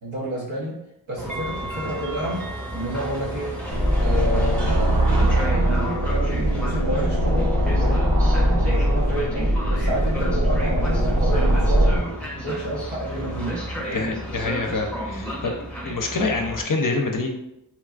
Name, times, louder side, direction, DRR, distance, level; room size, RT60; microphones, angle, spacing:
voice 1, 0.0-0.8 1.1-2.5 2.7-3.6 4.0-5.1 5.4-8.1 8.6-12.0 12.4-14.1, right 1 dB, 90° right, -6 dB, 0.8 m, -30 dB
Train, 1.2-16.6, equal, 5° left, 0.7 m, -32 dB
sound 1, 3.7-12.0, equal, 55° right, 0.7 m, -21 dB
voice 2, 13.9-15.6 15.8-17.3, left 3 dB, 45° left, 2 dB, 0.5 m, -26 dB
3.1 x 2.4 x 2.3 m, 0.86 s
wide cardioid pair, 45°, 46 cm